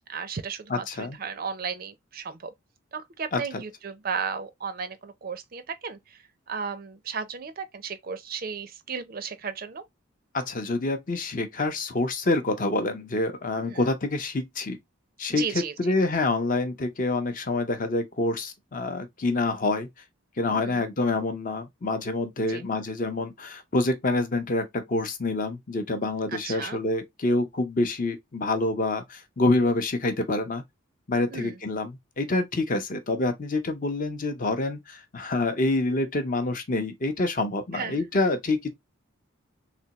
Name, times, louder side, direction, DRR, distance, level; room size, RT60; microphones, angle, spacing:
voice 1, 0.1-2.5 2.9-6.0 6.5-9.8 13.6-13.8 15.3-15.7 20.5-20.8 22.5-22.6 26.4-26.8 31.3-31.6 37.7-38.0, right 6 dB, 45° right, 0.4 m, -34 dB
voice 2, 0.7-1.2 3.3-3.6 10.3-14.8 15.2-19.9 20.4-30.6 31.1-38.7, left 2 dB, 40° left, 0.6 m, -27 dB
3.4 x 3.0 x 2.8 m
head